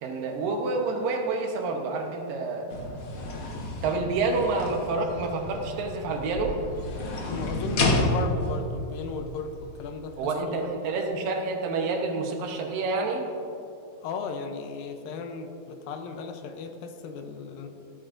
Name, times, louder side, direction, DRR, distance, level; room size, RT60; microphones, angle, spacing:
voice 1, 0.0-2.7 3.8-6.5 10.2-13.3, right 3 dB, 75° right, 2 dB, 2.7 m, -28 dB
sound 1, 2.7-10.2, left 2 dB, 55° left, 1.6 m, -31 dB
voice 2, 7.3-10.7 14.0-17.7, left 4 dB, 80° left, 6 dB, 2.5 m, -36 dB
15.5 x 13.0 x 2.6 m, 2.8 s
omnidirectional pair, 4.1 m